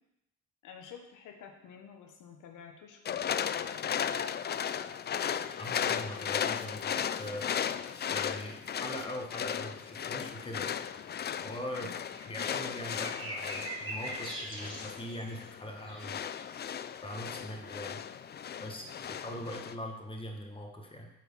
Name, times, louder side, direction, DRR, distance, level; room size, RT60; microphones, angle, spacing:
voice 1, 0.6-4.0 11.8-12.0, left 7 dB, 85° left, 3 dB, 1.3 m, -50 dB
sound 1, 3.1-19.7, left 8 dB, 35° left, 0.4 m, -36 dB
voice 2, 5.6-7.5 8.1-10.8 11.4-11.9 12.3-16.3 17.0-18.0 18.6-21.1, left 1 dB, 15° left, 2 dB, 1.5 m, -41 dB
sound 2, 11.9-15.5 15.9-16.8, right 1 dB, 15° right, 2.7 m, -42 dB
8.8 x 4.6 x 5.7 m, 0.87 s
cardioid pair, 90°, 30 cm